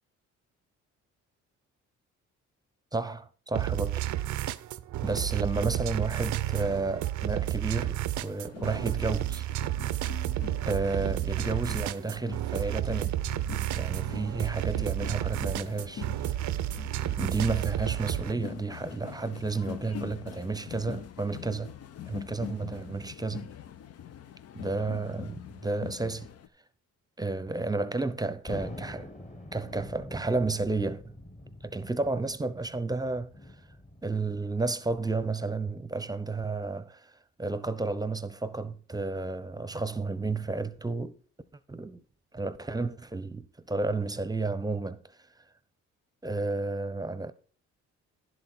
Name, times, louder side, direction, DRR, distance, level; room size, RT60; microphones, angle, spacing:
voice 1, 2.9-4.0 5.0-9.5 10.7-13.2 13.8-16.4 17.1-21.7 22.1-23.5 24.5-26.3 27.2-29.1 29.5-31.1 31.6-33.3 34.0-37.1 37.4-41.2 41.7-42.0 42.3-45.2 46.2-47.3, right 3 dB, 15° right, 0.8 m, -32 dB
sound 1, 3.5-18.3, right 14 dB, 70° right, 0.6 m, -31 dB
sound 2, 8.4-26.5, left 9 dB, 55° left, 0.7 m, -44 dB
Thunder, 28.5-35.3, left 1 dB, 25° left, 1.6 m, -45 dB
11.0 x 7.7 x 4.4 m
cardioid pair, 90°, 30 cm